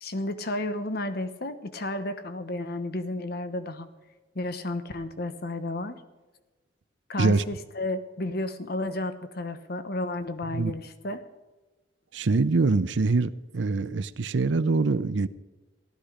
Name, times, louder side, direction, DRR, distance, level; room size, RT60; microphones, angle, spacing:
voice 1, 0.0-3.9 4.3-6.0 7.1-11.2, left 2 dB, 55° left, 1.1 m, -32 dB
voice 2, 12.1-15.3, right 3 dB, 75° right, 0.6 m, -24 dB
16.0 x 12.0 x 5.1 m
head